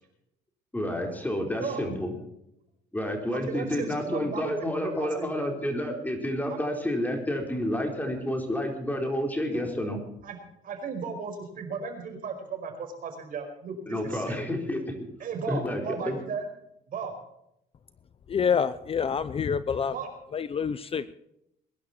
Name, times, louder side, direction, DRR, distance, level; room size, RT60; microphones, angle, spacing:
voice 1, 0.7-2.1 2.9-10.0 13.9-15.0 15.5-16.2, left 1 dB, 10° left, 2 dB, 4.2 m, -30 dB
voice 2, 3.3-5.5 6.5-6.6 9.5-9.7 10.2-10.4 10.6-14.4 15.2-16.4 16.9-17.1 19.9-20.1, right 5 dB, 55° right, 5 dB, 5.3 m, -36 dB
voice 3, 18.3-19.9 20.3-21.1, left 7 dB, 35° left, 15 dB, 0.7 m, -27 dB
22.0 x 11.5 x 4.4 m, 0.79 s
cardioid pair, 110°, 17 cm